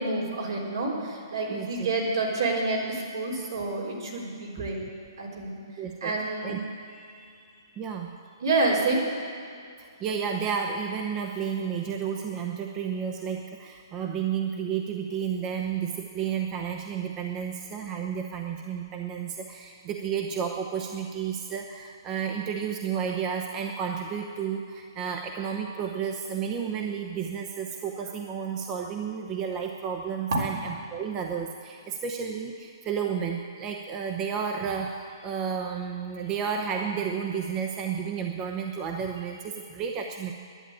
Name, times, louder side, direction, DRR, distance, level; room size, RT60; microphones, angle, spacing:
voice 1, 0.0-4.8 5.2-5.5 6.0-6.6 8.4-9.0 30.3-30.4, right 3 dB, 75° right, -2 dB, 3.9 m, -28 dB
voice 2, 1.5-1.9 4.6-4.7 5.8-6.6 7.8-8.1 9.8-40.3, right 7 dB, 25° right, 3 dB, 0.8 m, -32 dB
11.0 x 9.9 x 8.9 m, 2.4 s
hypercardioid pair, 145°, 2 cm